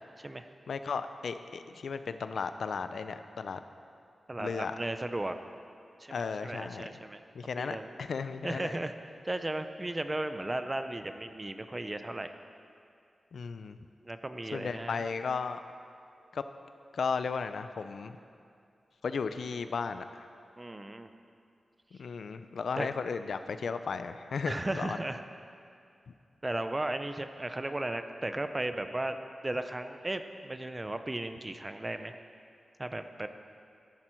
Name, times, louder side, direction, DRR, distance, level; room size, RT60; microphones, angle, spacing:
voice 1, 0.7-3.6 4.4-4.7 6.1-6.9 7.3-8.7 13.3-13.8 14.5-15.6 16.3-16.4 16.9-18.1 19.0-20.3 21.9-25.0, left 5 dB, 80° left, 10 dB, 0.5 m, -35 dB
voice 2, 4.3-5.4 6.0-7.2 7.6-7.9 8.4-8.9 9.2-12.3 14.0-15.0 20.6-21.1 22.8-22.9 24.4-25.2 26.4-29.2 29.4-32.2 32.8-33.3, right 1 dB, 15° right, 8 dB, 0.5 m, -35 dB
13.0 x 10.5 x 4.5 m, 2.4 s
wide cardioid pair, 180°, 0 cm